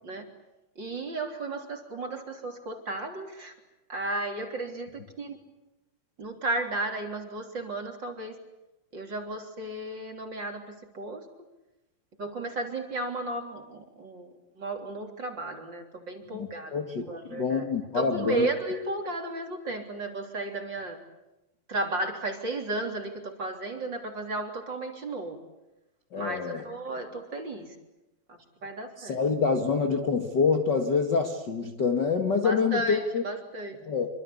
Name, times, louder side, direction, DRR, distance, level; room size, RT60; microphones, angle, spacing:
voice 1, 0.8-3.5 3.9-5.4 6.2-8.4 8.9-11.3 12.2-16.7 17.1-17.6 17.9-21.0 21.7-25.4 26.2-27.8 28.3-29.2 32.4-33.8, right 2 dB, 30° right, 3 dB, 3.8 m, -34 dB
voice 2, 16.3-18.5 26.1-26.6 29.0-33.2 33.9-34.1, left 5 dB, 40° left, 4 dB, 1.8 m, -26 dB
27.0 x 25.5 x 8.5 m, 0.96 s
omnidirectional pair, 4.3 m